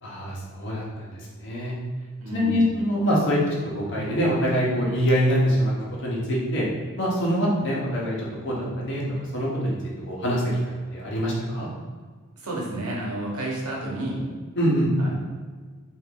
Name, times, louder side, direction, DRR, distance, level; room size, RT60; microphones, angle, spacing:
voice 1, 0.0-1.1 1.4-1.7 2.3-3.4 3.7-5.7 6.0-6.7 7.0-8.2 8.4-9.0 9.3-9.8 10.1-11.7 14.6-14.9, equal, 55° left, -4 dB, 0.8 m, -24 dB
voice 2, 2.2-2.6 12.4-14.2 15.0-15.1, right 1 dB, 85° right, -3 dB, 0.9 m, -30 dB
2.9 x 2.5 x 3.7 m, 1.5 s
head